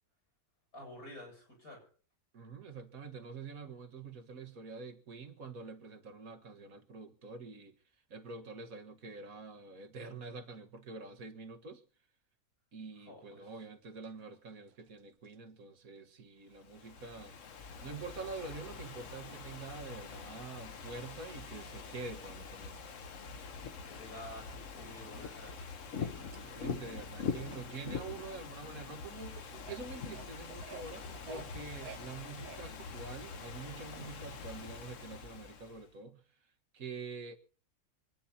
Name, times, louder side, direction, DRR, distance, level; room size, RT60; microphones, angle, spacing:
voice 1, 0.7-1.8 13.1-13.6 21.7-21.9 23.8-25.7, left 1 dB, 85° left, 8.7 m, -50 dB
voice 2, 2.3-7.8 8.1-11.8 12.7-17.4 17.8-22.8 26.0-36.2 36.7-37.4, right 4 dB, 70° right, 1.9 m, -46 dB
sound 1, 14.0-15.3 16.0-16.1 18.0-18.1 19.2-19.3 20.0-20.1 23.4-23.5 24.3-24.4 24.9-25.0 25.4-28.1 28.6-28.7 29.4-32.8, right 5 dB, 90° right, 1.5 m, -53 dB
Ocean / Fireworks, 16.6-35.9, left 5 dB, 60° left, 1.4 m, -44 dB
26.0 x 10.0 x 4.3 m
omnidirectional pair, 1.6 m